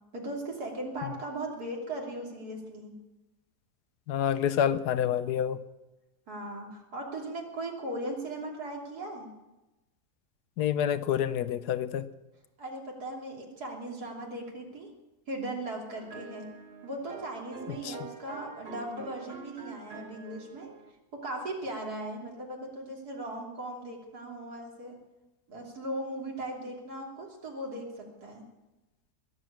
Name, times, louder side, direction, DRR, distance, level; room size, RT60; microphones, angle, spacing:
voice 1, 0.1-2.9 6.3-9.3 12.6-14.9 15.3-16.5 16.8-20.7 21.1-24.9 25.5-28.4, right 1 dB, 75° right, -1 dB, 3.6 m, -38 dB
voice 2, 4.1-5.6 10.6-12.1 17.8-18.0, left 9 dB, 85° left, 14 dB, 1.3 m, -28 dB
sound 1, 15.9-20.9, right 6 dB, 45° right, 1.2 m, -46 dB
21.0 x 7.7 x 8.6 m, 1.0 s
omnidirectional pair, 1.7 m